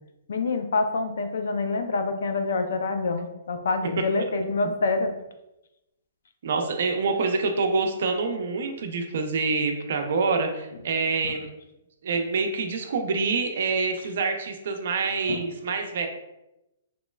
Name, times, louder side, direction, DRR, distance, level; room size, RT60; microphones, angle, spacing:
voice 1, 0.3-5.1 15.3-15.4, left 3 dB, 75° left, 6 dB, 0.4 m, -26 dB
voice 2, 6.4-11.5 12.0-16.1, right 4 dB, 60° right, 4 dB, 0.5 m, -26 dB
3.0 x 3.0 x 2.2 m, 0.92 s
hypercardioid pair, 160°, 0 cm